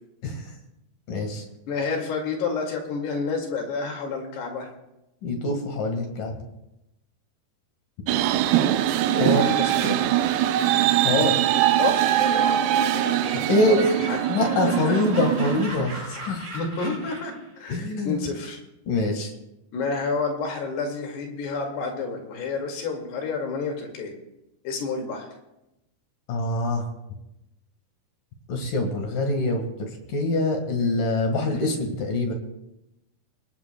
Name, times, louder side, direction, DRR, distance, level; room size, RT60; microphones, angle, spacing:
voice 1, 1.1-1.4 5.2-6.4 9.2-9.4 11.0-11.3 13.3-13.9 14.3-16.5 17.7-18.2 18.9-19.3 26.3-26.8 28.5-32.3, left 2 dB, 60° left, 3 dB, 3.0 m, -24 dB
voice 2, 1.7-4.7 9.1-10.1 11.8-12.1 13.7-14.2 14.6-15.0 16.2-18.6 19.7-24.1 24.6-25.3, left 4 dB, 80° left, 2 dB, 4.2 m, -29 dB
sound 1, 8.1-15.6, right 12 dB, 80° right, 2.6 m, -22 dB
Laughter, 12.0-17.5, right 1 dB, 20° right, 4.0 m, -38 dB
25.0 x 18.5 x 2.2 m, 0.90 s
omnidirectional pair, 4.6 m